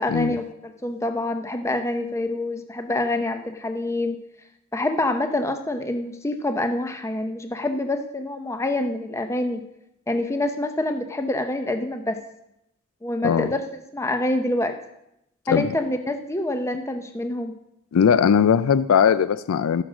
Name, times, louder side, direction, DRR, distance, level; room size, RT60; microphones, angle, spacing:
voice 1, 0.0-4.2 4.7-9.6 10.1-12.2 13.0-13.6 13.9-14.7 15.5-17.6, left 1 dB, 15° left, 7 dB, 0.6 m, -26 dB
voice 2, 17.9-19.8, left 7 dB, 80° left, 15 dB, 0.4 m, -19 dB
14.0 x 6.3 x 6.2 m, 0.84 s
head